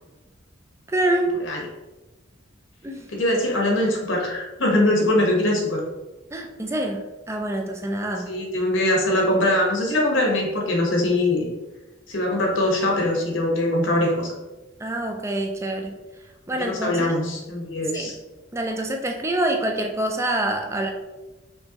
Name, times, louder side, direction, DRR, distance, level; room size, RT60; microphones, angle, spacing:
voice 1, 0.9-1.3 2.8-3.0 6.3-8.3 14.8-15.9 16.5-17.1 17.9-18.1 18.5-20.9, right 1 dB, 15° right, 3 dB, 0.5 m, -26 dB
voice 2, 3.1-5.8 8.3-11.5 12.1-14.3 16.5-18.2, left 1 dB, 85° left, -1 dB, 1.2 m, -22 dB
5.3 x 3.0 x 3.0 m, 1.1 s
head